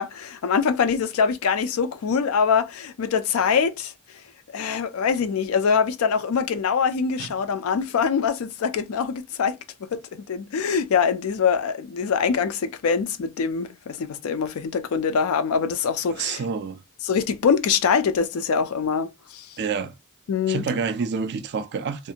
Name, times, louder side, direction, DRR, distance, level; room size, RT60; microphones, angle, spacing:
voice 1, 0.0-3.9 4.5-9.6 9.9-16.4 17.0-19.5 20.3-20.6, left 6 dB, 65° left, 0.4 m, -24 dB
voice 2, 16.1-16.8 19.6-19.9 20.5-22.1, right 5 dB, 50° right, 0.4 m, -28 dB
2.5 x 2.4 x 2.8 m
head